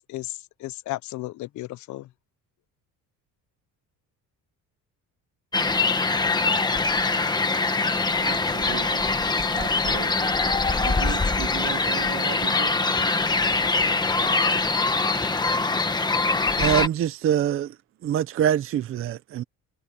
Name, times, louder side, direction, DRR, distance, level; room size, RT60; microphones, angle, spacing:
voice 1, 0.0-2.1, left 18 dB, 55° left, 0.6 m, -34 dB
sound 1, 5.5-16.9, left 3 dB, 10° left, 1.2 m, -23 dB
voice 2, 8.2-13.1, right 16 dB, 80° right, 3.5 m, -38 dB
voice 3, 16.6-17.8 18.0-19.4, right 10 dB, 40° right, 0.6 m, -24 dB
cardioid pair, 165°, 35 cm